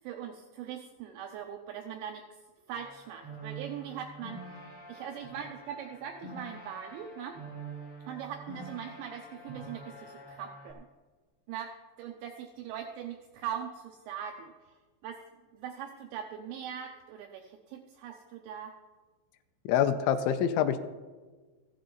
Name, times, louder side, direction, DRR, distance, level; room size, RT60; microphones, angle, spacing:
voice 1, 0.0-2.2 2.7-4.4 4.9-7.4 8.1-10.9 11.5-11.7 12.0-14.8 15.0-15.2 15.5-18.7, right 9 dB, 80° right, 4 dB, 2.8 m, -41 dB
sound 1, 2.7-10.7, right 2 dB, 30° left, 1.2 m, -46 dB
voice 2, 19.7-20.8, left 9 dB, 90° left, 7 dB, 3.0 m, -26 dB
15.0 x 11.0 x 3.9 m, 1.3 s
omnidirectional pair, 5.4 m